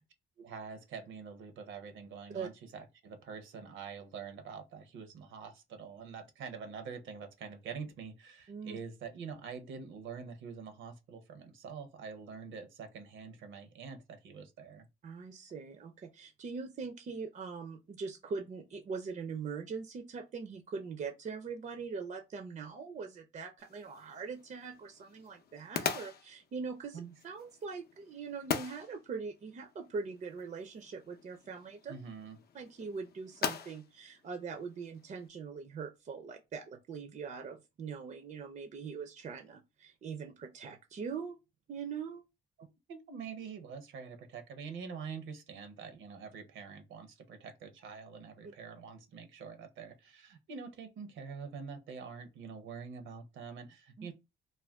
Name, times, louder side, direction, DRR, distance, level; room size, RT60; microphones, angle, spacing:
voice 1, 0.4-14.9 26.9-27.1 31.9-32.4 42.6-54.1, right 6 dB, 75° right, 0.7 m, -45 dB
voice 2, 8.5-8.8 15.0-31.9 32.5-41.4 41.7-42.2 54.0-54.1, right 5 dB, 40° right, 0.4 m, -42 dB
sound 1, 23.6-35.3, left 7 dB, 50° left, 0.5 m, -42 dB
2.4 x 2.2 x 3.3 m
cardioid pair, 90°, 20 cm